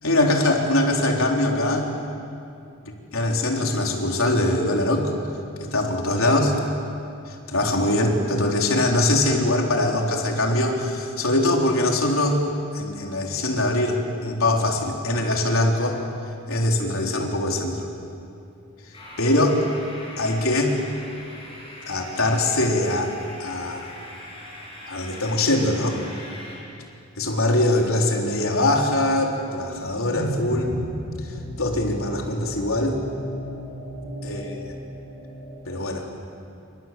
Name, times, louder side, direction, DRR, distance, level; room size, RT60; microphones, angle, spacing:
voice 1, 0.0-1.9 3.1-5.1 5.7-6.5 7.3-12.4 12.7-16.0 16.5-17.9 19.2-19.6 20.2-20.8 21.9-23.1 23.4-23.9 24.9-26.0 27.2-30.7 31.6-33.0 34.2-34.5 35.7-36.1, left 1 dB, 75° left, 1 dB, 4.0 m, -22 dB
sound 1, 18.9-26.6, left 1 dB, 25° left, 7.7 m, -41 dB
sound 2, 29.5-35.8, equal, ahead, 6.5 m, -34 dB
29.0 x 26.5 x 7.8 m, 2.5 s
head